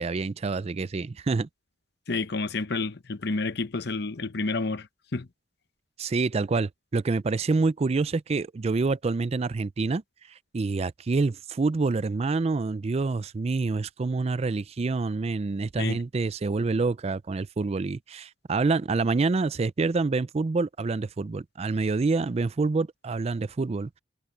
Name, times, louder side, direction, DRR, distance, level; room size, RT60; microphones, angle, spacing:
voice 1, 0.0-1.5 6.0-10.0 10.5-24.0, right 3 dB, 35° right, 0.4 m, -27 dB
voice 2, 2.1-4.9 5.1-5.3 15.8-16.0, left 3 dB, 65° left, 1.0 m, -29 dB
head